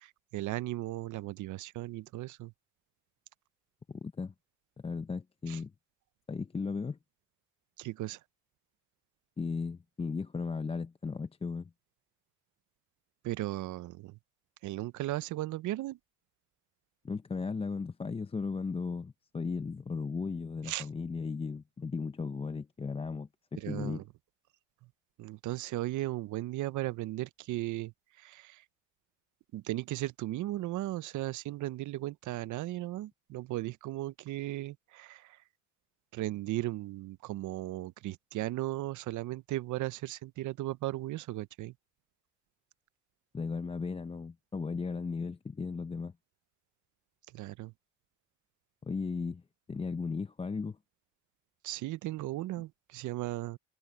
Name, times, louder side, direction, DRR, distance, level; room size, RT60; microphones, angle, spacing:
voice 1, 0.0-2.5 5.5-5.6 7.8-8.2 13.2-14.2 14.6-16.0 20.7-20.9 23.6-24.0 25.2-27.9 28.2-28.6 29.5-35.4 36.1-41.7 47.3-47.7 51.6-53.6, right 16 dB, 75° right, 0.6 m, -36 dB
voice 2, 3.9-4.3 4.8-5.7 6.3-7.0 9.4-11.7 17.0-24.0 43.3-46.1 48.8-49.4 49.7-50.8, left 4 dB, 20° left, 0.5 m, -36 dB
cardioid pair, 90°, 30 cm